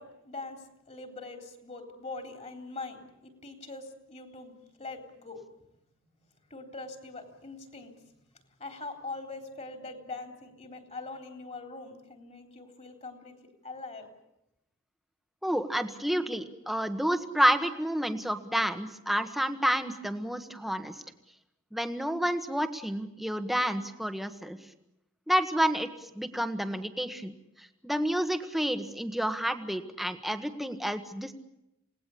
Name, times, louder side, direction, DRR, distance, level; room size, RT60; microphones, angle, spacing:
voice 1, 0.0-5.4 6.5-7.9 8.6-13.3 13.6-14.1, left 3 dB, 35° left, 4 dB, 3.7 m, -42 dB
voice 2, 15.4-20.9 21.7-24.6 25.3-27.3 27.8-31.3, equal, ahead, 7 dB, 1.6 m, -29 dB
28.0 x 19.0 x 8.5 m, 0.87 s
head